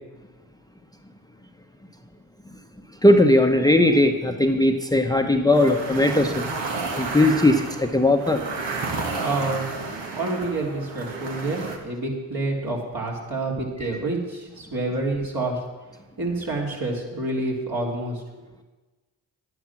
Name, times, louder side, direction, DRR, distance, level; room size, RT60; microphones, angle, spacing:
voice 1, 3.0-6.4 7.0-8.4, left 1 dB, 10° left, 5 dB, 1.0 m, -18 dB
sound 1, 5.5-11.8, right 3 dB, 70° right, 1.7 m, -31 dB
voice 2, 9.2-9.6 10.2-15.6 16.2-18.2, right 2 dB, 50° right, -1 dB, 3.4 m, -28 dB
10.5 x 9.4 x 6.0 m, 1.2 s
supercardioid pair, 45°, 44 cm